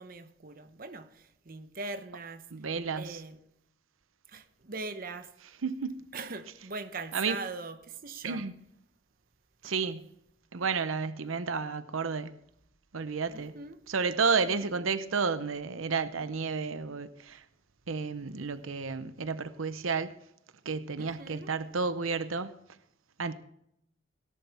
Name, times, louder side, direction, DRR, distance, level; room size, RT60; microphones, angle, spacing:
voice 1, 0.0-2.5 3.0-3.4 4.3-5.3 6.1-8.5 9.6-9.7 13.3-13.8 14.4-14.8 21.0-21.5, right 3 dB, 45° right, 0.9 m, -41 dB
voice 2, 2.5-3.2 5.6-6.0 7.1-7.4 8.2-8.5 9.6-10.1 10.5-12.3 12.9-13.5 13.9-17.4 17.9-20.1 20.7-22.5 23.2-23.3, right 5 dB, 90° right, 0.8 m, -31 dB
18.0 x 11.0 x 3.5 m
head